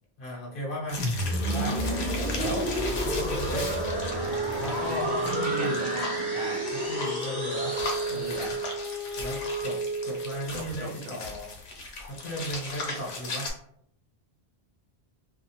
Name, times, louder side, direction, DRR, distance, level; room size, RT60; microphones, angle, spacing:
voice 1, 0.2-1.0 1.5-1.8 2.1-2.7 3.0-3.7 4.2-5.8 6.7-7.7 8.1-8.6 9.2-9.8 10.0-11.5 12.1-13.5, equal, 60° left, -4 dB, 1.0 m, -36 dB
sound 1, 0.9-13.5, left 3 dB, 90° left, 0.9 m, -38 dB
sound 2, 1.0-8.9, equal, 25° right, 0.8 m, -31 dB
Wind instrument woodwind instrument, 3.8-10.6, right 3 dB, 35° left, 0.7 m, -33 dB
voice 2, 4.5-6.7 8.1-8.6 10.5-11.2, right 1 dB, 65° right, -1 dB, 0.7 m, -39 dB
2.5 x 2.3 x 2.8 m, 0.70 s
omnidirectional pair, 1.1 m